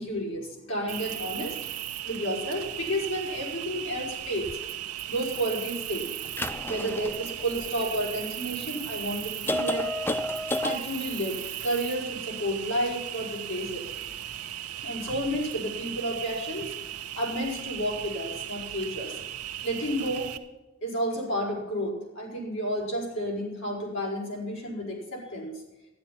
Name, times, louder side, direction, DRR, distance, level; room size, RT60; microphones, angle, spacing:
voice 1, 0.0-1.6 2.0-4.5 5.1-6.1 6.7-9.9 10.6-13.8 14.8-16.7 17.1-19.2 19.6-20.3 20.8-25.6, equal, 60° left, -2 dB, 5.5 m, -31 dB
Cricket, 0.9-20.4, right 11 dB, 90° right, 1.0 m, -37 dB
sound 1, 4.4-4.5 6.2-8.2 8.8-8.9 9.5-10.8, left 1 dB, 10° left, 0.4 m, -31 dB
12.5 x 10.5 x 5.8 m, 1.0 s
head